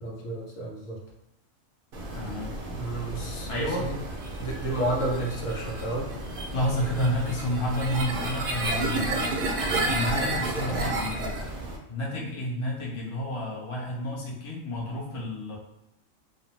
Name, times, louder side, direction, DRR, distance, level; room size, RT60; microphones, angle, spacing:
voice 1, 0.0-1.0 2.7-4.0 4.4-6.1 10.7-10.8, right 2 dB, 80° left, -2 dB, 1.1 m, -31 dB
sound 1, 1.9-11.8, right 2 dB, 60° right, 0.6 m, -31 dB
voice 2, 2.1-2.6 3.5-3.9 6.5-11.5 11.9-15.6, left 1 dB, 35° left, -4 dB, 0.5 m, -30 dB
2.6 x 2.0 x 3.0 m, 0.89 s
omnidirectional pair, 1.3 m